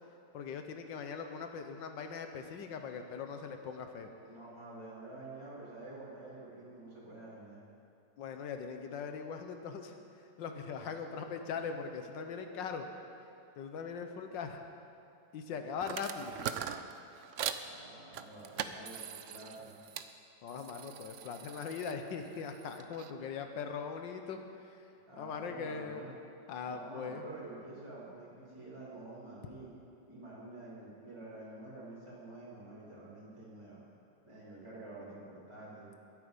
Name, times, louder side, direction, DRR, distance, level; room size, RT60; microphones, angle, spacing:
voice 1, 0.3-4.1 8.2-9.9 10.4-12.9 13.6-14.6 15.3-16.4 20.4-24.8 25.2-26.2 26.5-27.2, left 6 dB, 85° left, 6 dB, 1.6 m, -40 dB
voice 2, 4.2-7.6 10.6-11.6 15.5-15.7 17.2-17.3 17.6-19.8 25.1-26.1 26.6-29.7 30.1-33.8 34.2-35.9, right 2 dB, 15° right, -9 dB, 3.5 m, -49 dB
sound 1, 15.8-17.7 18.1-20.1 20.5-23.1, right 9 dB, 75° right, 0.6 m, -42 dB
22.5 x 8.4 x 5.3 m, 2.6 s
omnidirectional pair, 2.0 m